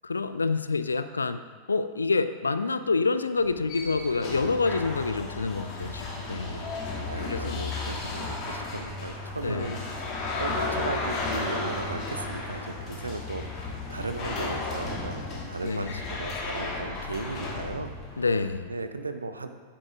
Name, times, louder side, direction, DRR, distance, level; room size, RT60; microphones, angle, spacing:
voice 1, 0.0-1.4 1.7-6.7 7.3-7.6 9.4-9.7 15.6-16.0 18.2-18.7, left 4 dB, 75° left, 12 dB, 0.3 m, -27 dB
sound 1, 3.4-18.5, left 3 dB, 35° left, 1.5 m, -34 dB
voice 2, 6.3-10.1 10.4-18.2 18.7-19.5, right 3 dB, 80° right, 8 dB, 0.5 m, -36 dB
9.9 x 7.5 x 2.5 m, 1.5 s
figure-of-eight pair, 90°, 0 cm